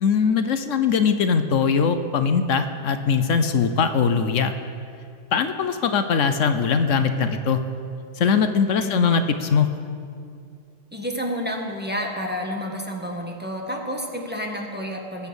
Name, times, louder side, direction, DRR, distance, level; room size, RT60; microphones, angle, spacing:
voice 1, 0.0-4.5 5.3-7.6 8.2-9.7, left 6 dB, 80° left, 9 dB, 1.2 m, -21 dB
voice 2, 8.7-9.1 10.9-15.3, equal, 10° right, 0 dB, 1.7 m, -29 dB
20.5 x 8.4 x 7.0 m, 2.4 s
omnidirectional pair, 1.3 m